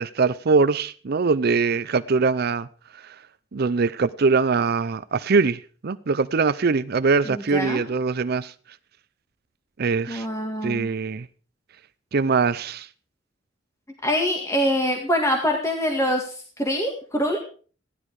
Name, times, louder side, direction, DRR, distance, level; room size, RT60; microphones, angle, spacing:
voice 1, 0.0-2.7 3.0-3.2 3.5-8.5 9.8-10.3 10.6-11.3 12.1-12.9, right 4 dB, 55° right, 0.5 m, -22 dB
voice 2, 7.3-7.8 10.1-10.9 14.0-17.4, equal, 15° left, 1.9 m, -24 dB
16.0 x 12.0 x 4.8 m
head